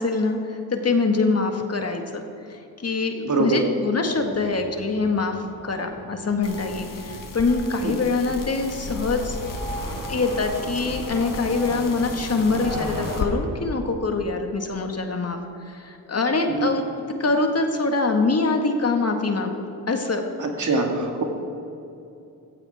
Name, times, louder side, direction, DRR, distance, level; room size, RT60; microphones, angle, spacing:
voice 1, 0.0-2.2 2.5-9.4 10.1-16.8 17.2-20.2 20.6-20.8, left 3 dB, 40° left, 4 dB, 1.7 m, -24 dB
voice 2, 3.2-3.6 7.8-7.9 16.5-16.7 20.4-21.2, right 3 dB, 50° right, 2 dB, 2.2 m, -23 dB
sound 1, 4.1-13.3, right 1 dB, 85° right, 3.8 m, -36 dB
sound 2, 6.4-13.3, left 5 dB, 55° left, 1.5 m, -36 dB
15.0 x 15.0 x 3.6 m, 2.7 s
cardioid pair, 60°, 38 cm